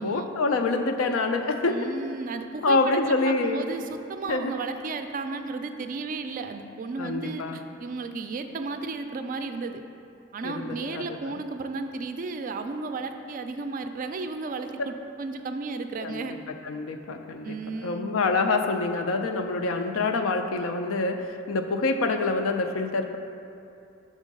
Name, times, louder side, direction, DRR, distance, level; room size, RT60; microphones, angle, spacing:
voice 1, 0.0-1.8 2.6-3.7 4.3-4.5 7.0-7.6 10.4-11.3 16.0-16.3 16.6-17.6 17.8-23.2, left 3 dB, 85° left, 5 dB, 0.5 m, -26 dB
voice 2, 1.7-9.8 10.3-16.4 17.4-18.1, right 3 dB, 40° right, 7 dB, 0.3 m, -34 dB
6.3 x 3.7 x 5.2 m, 2.7 s
head